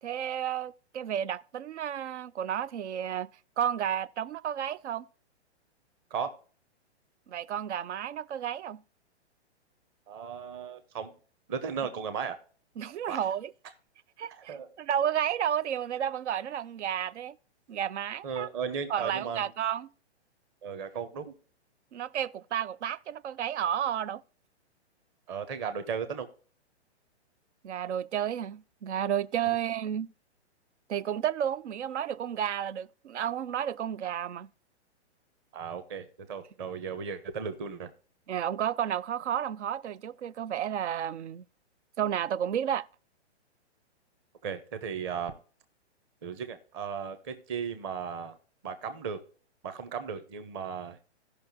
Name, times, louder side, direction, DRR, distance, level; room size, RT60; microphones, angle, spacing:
voice 1, 0.0-3.3 3.6-5.1 7.3-8.8 12.8-13.5 14.2-17.4 17.7-18.5 18.9-19.9 21.9-24.2 27.6-30.1 30.9-34.5 38.3-41.4 42.0-42.9, right 9 dB, 80° right, 0.6 m, -32 dB
voice 2, 10.1-11.2 11.5-12.4 13.1-13.3 14.3-14.7 18.2-19.5 20.6-21.3 25.3-26.3 29.4-29.6 35.5-37.9 44.4-45.3 46.2-48.4 48.6-49.2 49.6-51.1, right 6 dB, 20° right, 0.8 m, -36 dB
16.5 x 5.8 x 2.7 m
hypercardioid pair, 165°, 34 cm